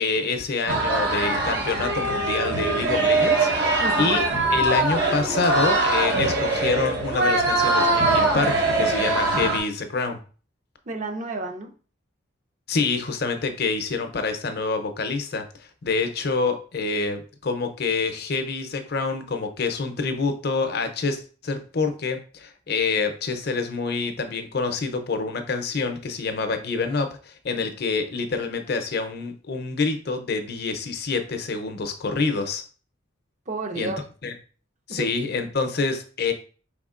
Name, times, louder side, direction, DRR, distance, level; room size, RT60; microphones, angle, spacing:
voice 1, 0.0-4.2 4.5-10.2 12.7-32.6 33.7-33.9 34.2-34.3 34.9-36.3, left 4 dB, 50° left, 0.6 m, -27 dB
sound 1, 0.7-9.6, right 2 dB, 50° right, 1.1 m, -22 dB
voice 2, 3.8-4.1 10.9-11.7 33.5-34.1 34.9-35.1, right 2 dB, 35° right, 0.6 m, -31 dB
4.7 x 3.6 x 2.4 m
head